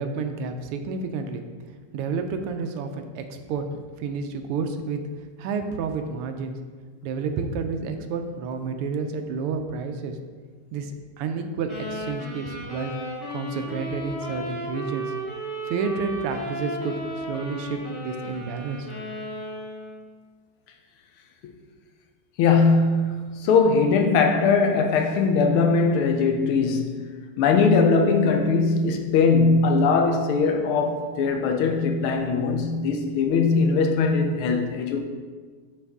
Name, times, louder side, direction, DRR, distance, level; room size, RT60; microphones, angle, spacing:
voice 1, 0.0-1.5 1.9-3.7 4.0-5.0 5.4-6.6 7.0-10.2 10.7-12.9 13.3-15.1 15.7-17.0 17.3-18.9, right 5 dB, 85° right, 6 dB, 1.5 m, -30 dB
sound 1, 11.7-20.0, right 1 dB, 20° left, 1.3 m, -34 dB
voice 2, 22.4-27.1 27.4-35.0, left 4 dB, 80° left, 4 dB, 1.5 m, -20 dB
9.4 x 3.3 x 3.5 m, 1.5 s
omnidirectional pair, 2.4 m